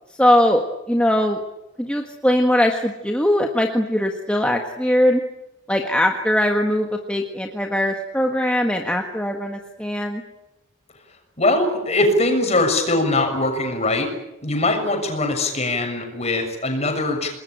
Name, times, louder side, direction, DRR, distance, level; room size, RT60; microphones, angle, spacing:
voice 1, 0.2-0.6 0.9-1.4 1.8-5.2 5.7-10.2, left 1 dB, 5° left, 2 dB, 1.6 m, -20 dB
voice 2, 11.4-14.1 14.4-17.3, left 2 dB, 30° left, 4 dB, 6.8 m, -21 dB
28.0 x 21.0 x 9.1 m, 0.94 s
head